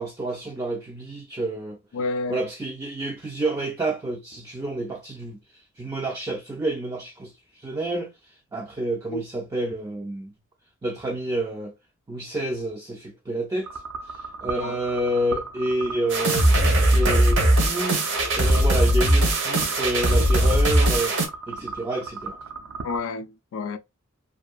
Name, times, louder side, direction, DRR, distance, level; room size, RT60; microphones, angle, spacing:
voice 1, 0.0-1.8 2.3-7.3 7.6-10.3 10.8-11.7 12.1-13.8 14.1-21.1 21.5-22.4, right 1 dB, 15° right, 0.3 m, -29 dB
voice 2, 1.9-2.4 9.1-9.2 14.6-14.8 22.8-23.8, left 3 dB, 70° left, 0.3 m, -29 dB
sound 1, 13.6-23.0, right 4 dB, 90° right, 0.5 m, -37 dB
sound 2, 16.1-21.3, right 1 dB, 60° right, 0.7 m, -20 dB
2.6 x 2.5 x 2.2 m
head